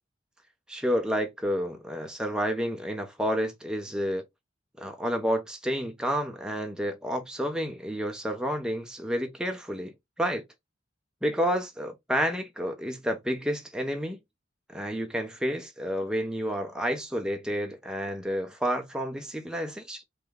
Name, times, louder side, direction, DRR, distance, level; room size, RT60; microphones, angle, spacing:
voice 1, 0.7-4.2 4.8-10.4 11.2-14.2 14.7-20.0, equal, 5° right, 0.8 m, -30 dB
5.0 x 2.3 x 3.7 m
head